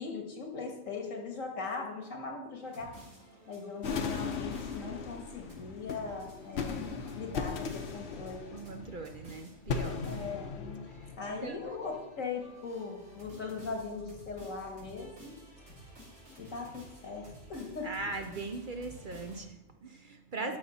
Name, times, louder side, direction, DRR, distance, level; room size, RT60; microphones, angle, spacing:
voice 1, 0.0-3.0 3.5-8.4 10.0-10.8 11.2-15.4 16.4-17.9 20.4-20.6, left 4 dB, 85° left, 1 dB, 2.1 m, -40 dB
sound 1, 2.6-19.4, equal, 90° right, 4.0 m, -53 dB
sound 2, 3.8-12.1, left 5 dB, 60° left, 1.0 m, -38 dB
voice 2, 8.5-10.1 11.0-11.1 11.4-11.8 17.8-20.6, right 3 dB, 50° right, 6 dB, 0.7 m, -40 dB
12.5 x 5.9 x 4.2 m, 0.97 s
omnidirectional pair, 1.3 m